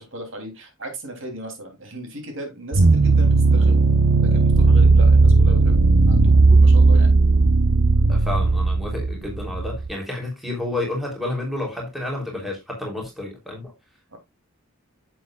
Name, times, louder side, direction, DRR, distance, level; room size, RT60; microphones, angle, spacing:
voice 1, 0.0-3.8 4.2-5.8 6.1-7.1 14.1-14.2, right 1 dB, 60° right, 3.1 m, -36 dB
sound 1, 2.7-9.9, right 3 dB, 85° right, 0.7 m, -16 dB
voice 2, 8.1-13.7, left 2 dB, ahead, 3.2 m, -30 dB
10.5 x 7.7 x 2.4 m
head